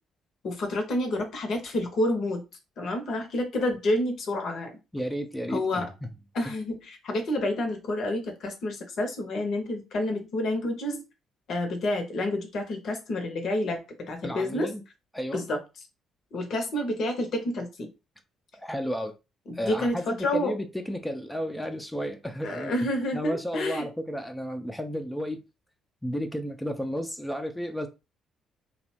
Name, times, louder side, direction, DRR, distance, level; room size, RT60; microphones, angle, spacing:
voice 1, 0.4-2.4 2.8-4.7 5.5-5.9 6.3-11.0 11.5-14.7 15.3-15.6 16.3-17.9 19.5-20.5 22.4-23.9, left 1 dB, 55° left, 0.7 m, -29 dB
voice 2, 4.9-6.1 6.4-6.5 14.2-14.8 15.1-15.4 18.5-19.1 19.5-25.4 26.0-27.9, equal, 10° left, 0.4 m, -33 dB
2.8 x 2.0 x 2.8 m
hypercardioid pair, 45°, 0 cm